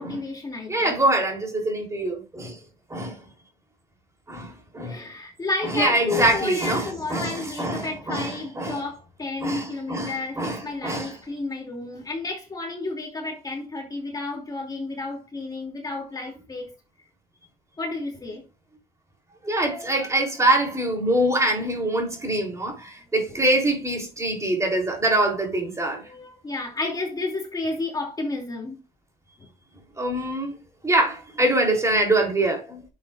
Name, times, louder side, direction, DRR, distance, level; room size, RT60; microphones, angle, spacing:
voice 1, 0.0-1.0 4.8-16.7 17.8-18.4 23.3-23.4 25.8-28.8, left 2 dB, 20° left, 2.7 m, -31 dB
voice 2, 0.7-2.6 2.9-3.2 4.3-5.1 5.6-8.8 9.4-11.1 19.4-26.0 30.0-30.6 30.8-32.8, right 1 dB, 15° right, 3.4 m, -24 dB
10.5 x 7.2 x 2.5 m
cardioid pair, 110°, 17 cm